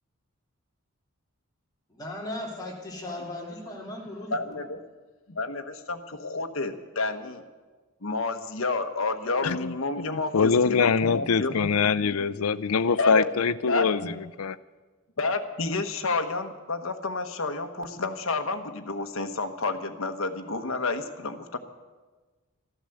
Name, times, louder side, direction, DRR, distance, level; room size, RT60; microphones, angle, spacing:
voice 1, 1.9-4.6, left 1 dB, 20° left, -3 dB, 2.9 m, -37 dB
voice 2, 4.3-4.8 5.3-7.4 8.0-11.7 12.0-12.1 13.0-14.1 15.2-21.6, left 3 dB, 70° left, 6 dB, 1.2 m, -30 dB
voice 3, 9.4-14.6, left 5 dB, 90° left, 17 dB, 0.5 m, -24 dB
13.0 x 12.0 x 7.8 m, 1.3 s
head